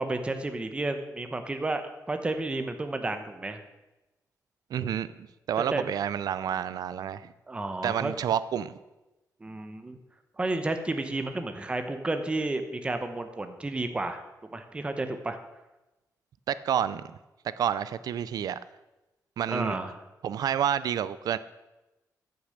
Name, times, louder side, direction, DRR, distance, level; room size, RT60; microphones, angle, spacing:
voice 1, 0.0-1.8 2.1-3.6 5.7-5.8 7.5-8.1 9.4-10.0 10.4-14.2 14.5-15.4 19.5-20.0, right 2 dB, 15° right, 7 dB, 0.9 m, -31 dB
voice 2, 4.7-5.1 5.5-7.3 7.8-8.8 16.5-17.0 17.6-18.6 19.4-19.8 20.2-21.4, right 9 dB, 80° right, 15 dB, 0.5 m, -29 dB
14.0 x 6.7 x 6.5 m, 1.0 s
wide cardioid pair, 150°, 7 cm